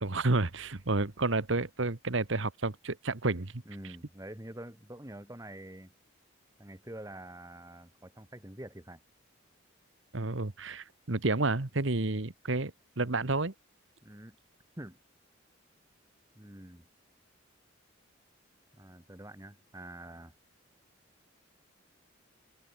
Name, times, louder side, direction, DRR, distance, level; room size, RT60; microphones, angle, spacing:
voice 1, 0.0-3.6 10.1-13.5, right 2 dB, 70° right, 1.4 m, -30 dB
voice 2, 3.7-5.9 6.6-9.0 14.0-14.4 14.8-15.0 16.3-16.9 18.8-20.3, right 1 dB, 15° right, 2.0 m, -46 dB
head